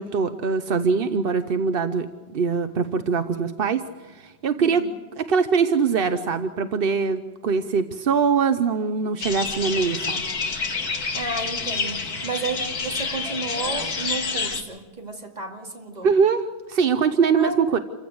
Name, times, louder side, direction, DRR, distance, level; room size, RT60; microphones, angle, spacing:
voice 1, 0.0-2.1 2.3-4.8 5.2-10.2 16.0-17.8, right 5 dB, 50° right, 0.7 m, -22 dB
voice 2, 4.6-4.9 11.1-16.1 17.3-17.6, right 3 dB, 25° right, 2.4 m, -32 dB
sound 1, 9.2-14.6, left 4 dB, 60° left, 2.4 m, -28 dB
27.5 x 15.5 x 7.9 m
omnidirectional pair, 1.8 m